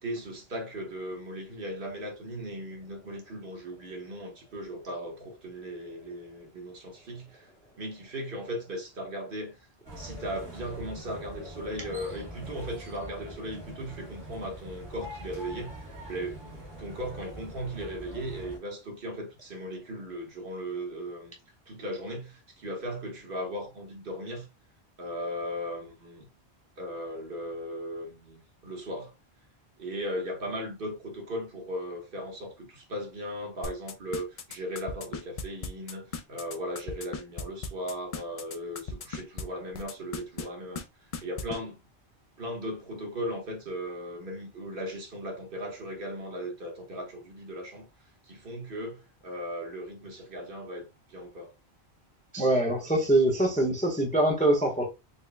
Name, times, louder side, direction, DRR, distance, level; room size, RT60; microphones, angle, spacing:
voice 1, 0.0-7.5 7.8-9.6 10.0-21.3 21.7-24.5 25.0-26.3 26.8-29.1 29.8-40.8 41.2-41.8 42.4-47.9 48.2-51.5, equal, 55° right, 1.2 m, -37 dB
sound 1, 9.9-18.6, equal, 85° right, 1.7 m, -43 dB
sound 2, 33.6-39.4 39.7-40.5 40.8-40.9 41.1-41.6, left 5 dB, 60° left, 0.4 m, -36 dB
voice 2, 52.3-54.8, right 1 dB, 10° left, 0.7 m, -24 dB
4.2 x 2.1 x 3.3 m
omnidirectional pair, 1.1 m